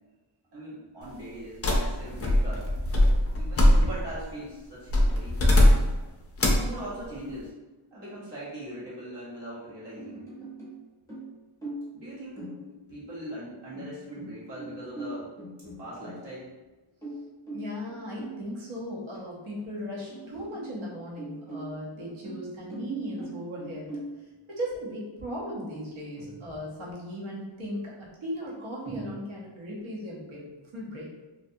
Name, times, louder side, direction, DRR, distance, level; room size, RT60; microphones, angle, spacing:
voice 1, 0.5-2.7 3.3-5.4 6.4-7.6 7.9-10.3 11.9-12.5 12.9-15.3 15.8-16.5, right 1 dB, 55° right, -9 dB, 1.2 m, -40 dB
sound 1, 1.6-4.2 4.9-6.0 6.4-6.7, left 1 dB, 30° left, 0.4 m, -21 dB
sound 2, 10.0-10.8 11.1-12.0 12.4-13.0 13.7-16.6 17.0-18.5 19.1-19.2 19.6-19.7 20.1-20.8 21.2-24.2 26.2-26.9 28.8-29.1, right 1 dB, 5° left, 0.8 m, -41 dB
voice 2, 17.5-23.9 24.5-30.4 30.7-31.2, equal, 75° right, -5 dB, 1.0 m, -37 dB
2.5 x 2.2 x 2.6 m, 1.2 s
wide cardioid pair, 125°, 48 cm